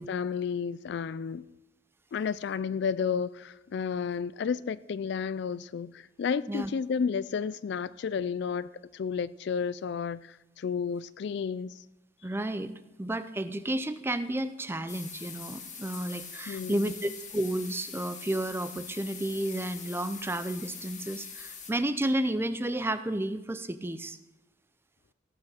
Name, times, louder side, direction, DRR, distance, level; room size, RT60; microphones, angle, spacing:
voice 1, 0.0-1.5 2.1-11.8 16.5-16.9, left 6 dB, 60° left, 0.3 m, -32 dB
voice 2, 12.2-12.7 13.0-24.2, right 1 dB, 10° right, 0.5 m, -32 dB
sound 1, 14.9-21.7, left 6 dB, 40° left, 1.7 m, -43 dB
16.5 x 6.0 x 6.7 m
head